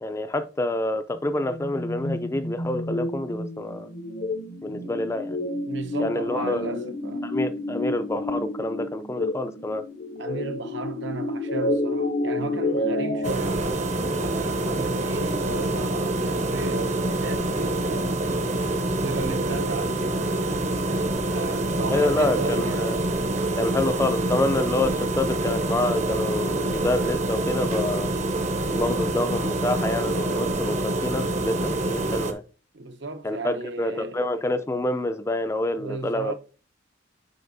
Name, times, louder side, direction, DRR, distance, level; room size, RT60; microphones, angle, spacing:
voice 1, 0.0-3.9 4.6-5.4 6.0-6.7 7.2-9.8 21.9-23.0 23.6-28.1 28.7-32.4 33.2-36.3, left 2 dB, 15° left, 0.4 m, -27 dB
sound 1, 1.1-13.3, left 1 dB, 50° left, 0.6 m, -30 dB
voice 2, 4.6-5.0 5.7-7.3 10.2-18.6 19.0-20.7 21.3-22.9 32.7-34.2 35.8-36.3, right 3 dB, 65° right, 0.8 m, -35 dB
sound 2, 13.2-32.3, right 2 dB, 35° right, 0.7 m, -26 dB
7.8 x 5.5 x 2.6 m
head